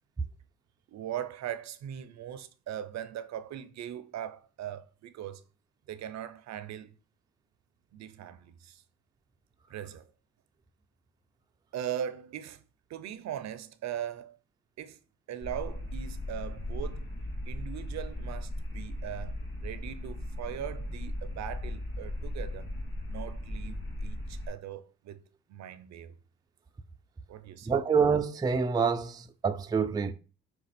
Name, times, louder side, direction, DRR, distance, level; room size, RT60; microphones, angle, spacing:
voice 1, 0.9-5.4 5.9-6.9 7.9-8.8 9.7-10.1 11.7-12.6 12.9-14.4 14.8-15.0 15.3-17.1 17.5-22.7 23.1-25.2 25.5-26.1 27.3-27.7, right 10 dB, 65° right, 0.6 m, -40 dB
sound 1, 15.4-24.5, left 1 dB, 40° left, 2.4 m, -37 dB
voice 2, 27.7-30.1, right 5 dB, 15° right, 0.4 m, -27 dB
5.2 x 2.3 x 4.1 m
cardioid pair, 90°, 30 cm